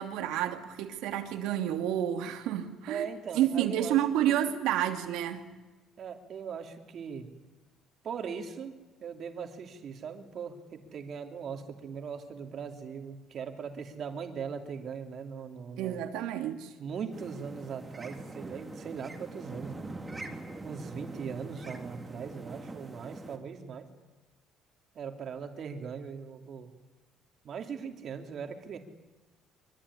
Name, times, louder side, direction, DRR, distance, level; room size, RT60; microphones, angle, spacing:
voice 1, 0.0-3.1 3.3-5.5 15.8-16.7, right 11 dB, 85° right, 2.9 m, -30 dB
voice 2, 2.9-4.0 4.2-4.4 6.0-7.3 8.0-16.0 16.8-19.9 20.6-23.9 24.9-26.7 27.4-28.8, right 6 dB, 40° right, 2.9 m, -40 dB
sound 1, 17.1-23.4, right 2 dB, 15° right, 2.8 m, -43 dB
24.5 x 24.0 x 10.0 m
cardioid pair, 160°, 0 cm